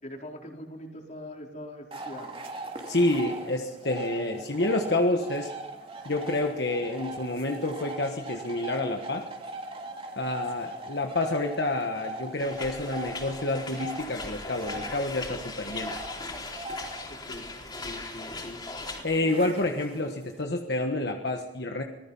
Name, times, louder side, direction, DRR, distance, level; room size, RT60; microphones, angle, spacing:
voice 1, 0.0-2.3 17.1-17.5 17.8-18.6 19.2-19.3, left 1 dB, 45° left, 1 dB, 4.2 m, -42 dB
sound 1, 1.9-20.4, right 2 dB, 30° right, 2.8 m, -41 dB
voice 2, 2.9-5.5 6.0-9.2 10.2-15.9 19.0-21.8, left 2 dB, 65° left, 3 dB, 1.5 m, -28 dB
sound 2, 12.4-19.0, left 3 dB, 25° left, 4.0 m, -39 dB
25.5 x 19.0 x 5.6 m, 1.0 s
head